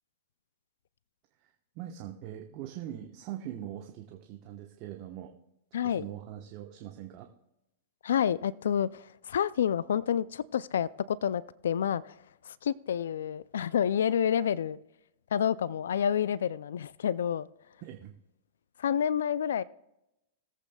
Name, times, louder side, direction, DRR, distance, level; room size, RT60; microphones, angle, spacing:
voice 1, 1.4-5.3 5.8-7.3 17.8-18.1, right 11 dB, 45° right, 1.0 m, -42 dB
voice 2, 5.7-6.1 8.0-12.1 12.5-14.8 15.3-17.5 18.8-19.6, left 9 dB, 80° left, 0.3 m, -29 dB
20.5 x 8.3 x 2.3 m
hypercardioid pair, 120°, 0 cm